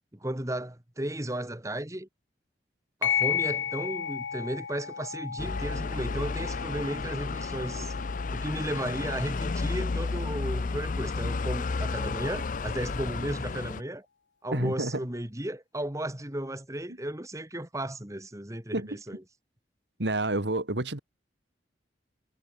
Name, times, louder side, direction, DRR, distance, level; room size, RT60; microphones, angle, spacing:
voice 1, 0.1-2.1 3.0-7.9 8.3-14.1 14.4-19.2, right 1 dB, 15° right, 1.9 m, -34 dB
sound 1, 3.0-12.0, left 8 dB, 85° left, 0.8 m, -35 dB
sound 2, 5.4-13.8, left 3 dB, 45° left, 0.5 m, -32 dB
voice 2, 14.5-15.1 18.7-19.0 20.0-21.0, right 2 dB, 70° right, 2.4 m, -29 dB
head